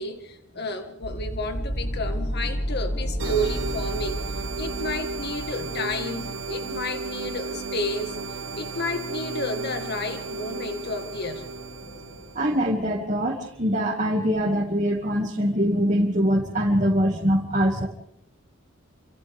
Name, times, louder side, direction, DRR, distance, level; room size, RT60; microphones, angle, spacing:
voice 1, 0.0-8.2 8.6-11.4, left 1 dB, 55° left, 2.0 m, -31 dB
sound 1, 1.0-13.0, equal, 85° left, 5.7 m, -34 dB
sound 2, 3.2-12.6, right 3 dB, 75° right, 1.3 m, -34 dB
voice 2, 12.3-17.9, equal, 40° right, 2.5 m, -23 dB
28.5 x 27.0 x 3.7 m
head